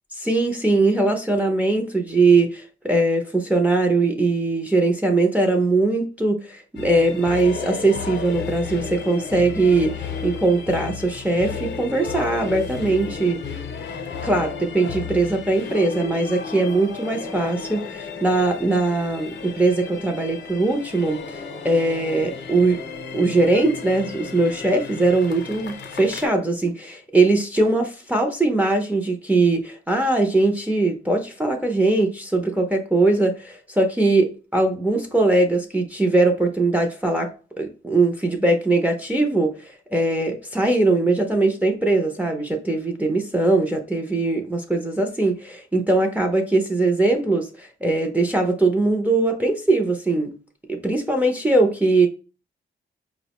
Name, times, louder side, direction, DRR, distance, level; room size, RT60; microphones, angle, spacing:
voice 1, 0.2-13.4 14.2-22.8 23.1-37.3 37.6-50.3 50.7-52.1, right 2 dB, 10° right, 0.4 m, -21 dB
sound 1, 6.8-26.3, left 5 dB, 65° left, 0.6 m, -34 dB
4.7 x 2.1 x 2.8 m
wide cardioid pair, 135°, 20 cm